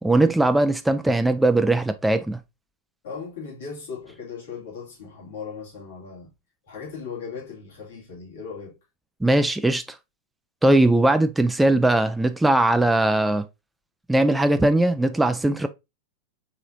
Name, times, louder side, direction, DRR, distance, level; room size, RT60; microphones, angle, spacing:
voice 1, 0.0-2.4 9.2-9.8 10.6-13.5 14.1-15.7, right 1 dB, 5° right, 0.4 m, -20 dB
voice 2, 3.0-6.3 6.7-8.8, left 5 dB, 60° left, 2.6 m, -37 dB
4.7 x 3.8 x 2.6 m
figure-of-eight pair, 90°, 0 cm